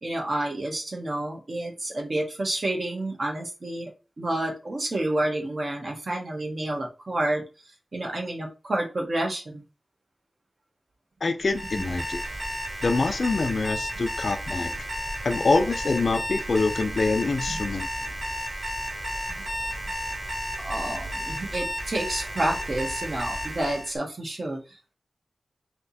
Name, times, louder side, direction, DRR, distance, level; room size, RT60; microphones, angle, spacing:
voice 1, 0.0-3.9 4.2-7.4 7.9-9.6 17.5-17.6 20.6-24.9, right 1 dB, 50° right, 1.4 m, -29 dB
voice 2, 11.2-12.2 12.8-14.8 15.2-17.9, left 3 dB, 60° left, 0.5 m, -25 dB
Alarm, 11.4-23.9, equal, 30° right, 1.9 m, -32 dB
3.4 x 2.9 x 4.1 m
wide cardioid pair, 100°, 0 cm